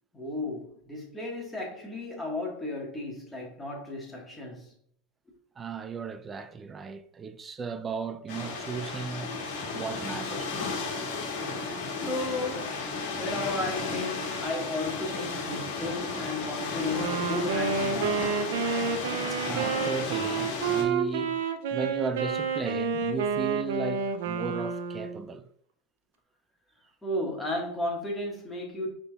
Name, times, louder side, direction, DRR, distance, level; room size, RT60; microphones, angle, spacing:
voice 1, 0.1-4.7 12.0-12.8 13.1-18.2 27.0-28.9, left 2 dB, 10° left, 1.6 m, -34 dB
voice 2, 5.6-9.4 9.7-10.8 19.3-25.5, right 5 dB, 25° right, 0.4 m, -36 dB
sound 1, 8.3-20.8, left 4 dB, 70° left, 1.5 m, -34 dB
Wind instrument woodwind instrument, 16.9-25.2, right 5 dB, 80° right, 0.5 m, -29 dB
5.8 x 3.6 x 2.4 m
supercardioid pair, 120°, 0 cm